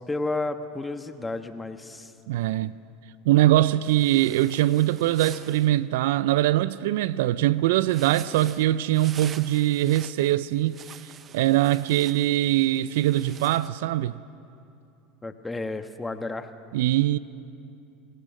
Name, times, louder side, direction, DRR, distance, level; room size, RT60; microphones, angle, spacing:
voice 1, 0.0-2.1 15.2-16.5, left 2 dB, 15° left, 1.3 m, -32 dB
voice 2, 2.3-2.7 3.3-10.8 11.3-14.2 16.7-17.2, right 14 dB, 75° right, 0.4 m, -22 dB
sound 1, 3.8-5.7 7.8-13.7, right 8 dB, 35° right, 0.8 m, -46 dB
28.0 x 18.0 x 6.3 m
hypercardioid pair, 90°, 0 cm